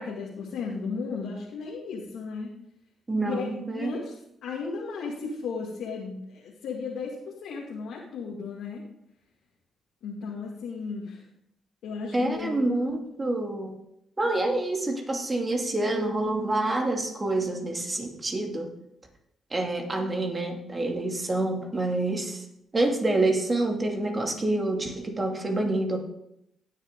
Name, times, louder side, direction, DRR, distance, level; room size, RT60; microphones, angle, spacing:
voice 1, 0.0-2.5 3.2-4.1 4.4-7.1 7.4-8.8 10.0-11.2 11.8-12.9, left 5 dB, 75° left, -4 dB, 2.2 m, -35 dB
voice 2, 3.1-3.9 12.1-13.7 14.2-18.7 19.5-22.4 22.7-26.0, right 2 dB, 35° right, 2 dB, 2.6 m, -27 dB
18.0 x 6.5 x 3.8 m, 0.79 s
hypercardioid pair, 45°, 0 cm